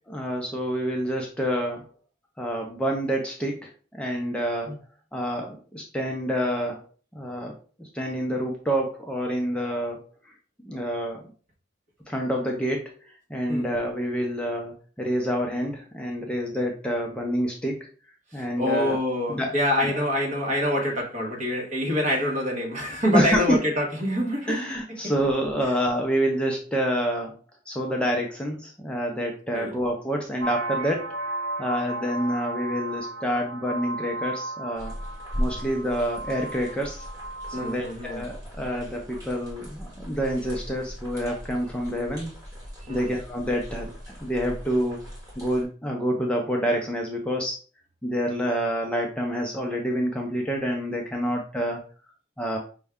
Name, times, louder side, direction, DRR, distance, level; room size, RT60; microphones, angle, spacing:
voice 1, 0.1-1.9 2.4-4.8 5.1-6.8 7.1-10.1 10.6-11.3 12.1-12.9 13.3-17.9 18.3-19.0 19.3-19.5 23.1-23.6 24.5-27.3 27.7-35.0 35.4-37.0 37.6-42.3 42.9-43.9 44.2-45.1 45.4-47.6 48.0-51.8 52.4-52.6, equal, 5° left, 0.5 m, -27 dB
voice 2, 18.3-24.6 24.9-25.1 25.6-25.8 29.5-29.8 37.5-38.2 42.9-43.1, left 1 dB, 40° right, 1.3 m, -26 dB
sound 1, 30.4-37.7, right 2 dB, 75° right, 0.8 m, -34 dB
sound 2, 34.7-45.6, equal, 20° right, 1.5 m, -38 dB
5.3 x 2.2 x 3.5 m
head